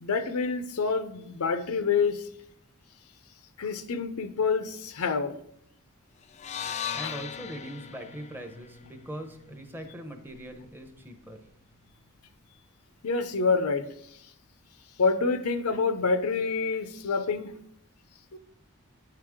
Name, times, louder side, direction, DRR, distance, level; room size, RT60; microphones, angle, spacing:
voice 1, 0.0-2.3 3.6-5.3 7.0-7.1 13.0-13.9 15.0-17.5 18.3-18.4, left 4 dB, 80° left, 10 dB, 0.6 m, -27 dB
sound 1, 6.3-10.5, left 8 dB, 30° left, 0.3 m, -39 dB
voice 2, 6.9-11.4, equal, 10° right, 5 dB, 0.7 m, -41 dB
8.7 x 4.7 x 3.6 m, 0.74 s
head